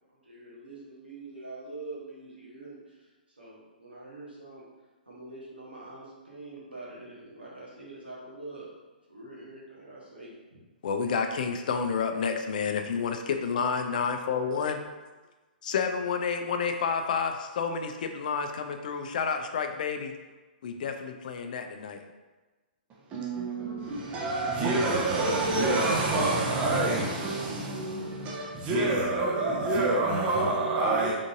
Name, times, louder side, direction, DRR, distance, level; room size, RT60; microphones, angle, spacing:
voice 1, 0.1-3.1 3.4-4.6 5.0-8.7 9.1-10.6, right 2 dB, 90° right, -6 dB, 1.3 m, -45 dB
voice 2, 10.8-14.8 15.6-20.1 20.6-22.0, left 6 dB, 55° left, 6 dB, 0.4 m, -30 dB
voice 3, 23.1-31.1, right 2 dB, 25° right, -3 dB, 0.7 m, -27 dB
3.8 x 3.6 x 2.5 m, 1.2 s
figure-of-eight pair, 120°, 5 cm